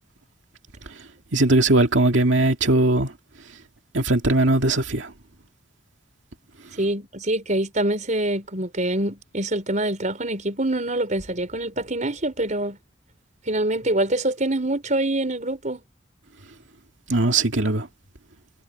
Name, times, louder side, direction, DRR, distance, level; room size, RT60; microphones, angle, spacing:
voice 1, 1.3-3.1 3.9-5.1 17.1-17.9, right 2 dB, 85° right, 2.3 m, -19 dB
voice 2, 6.8-12.8 13.5-15.8, right 1 dB, 40° right, 4.9 m, -25 dB
head